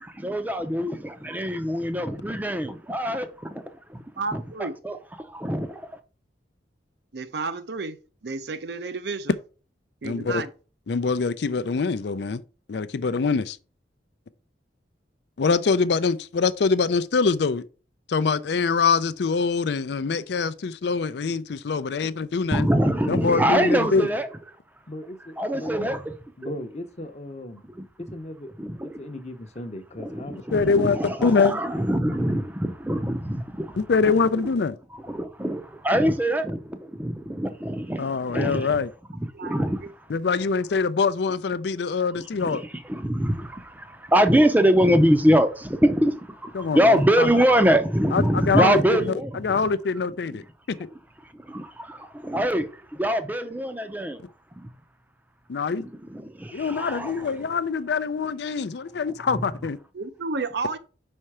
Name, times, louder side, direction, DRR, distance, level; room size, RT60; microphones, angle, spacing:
voice 1, 0.0-3.6 3.9-4.0 4.3-5.9 22.5-24.3 25.4-26.1 26.4-26.5 27.8-27.9 28.6-28.9 30.0-33.8 34.0-34.1 34.9-38.7 39.1-39.8 42.4-49.6 51.2-54.2 54.6-54.7 55.8-57.3, equal, 10° right, 0.6 m, -24 dB
voice 2, 4.2-4.7 7.1-9.4 10.0-10.5 22.0-22.1 34.3-34.5 39.3-39.5 59.9-60.8, right 3 dB, 65° right, 0.6 m, -31 dB
voice 3, 10.0-10.4 10.9-12.4 12.7-13.6 15.4-17.6 18.1-22.7 23.1-24.1 30.5-31.0 31.2-31.5 33.8-34.7 38.0-38.9 40.1-42.6 46.5-47.3 48.1-50.8 55.5-55.9 56.5-59.8, left 4 dB, 65° left, 0.4 m, -24 dB
voice 4, 24.9-25.9 26.4-28.5 28.8-31.4, left 1 dB, 40° left, 0.8 m, -38 dB
5.5 x 4.4 x 4.8 m
head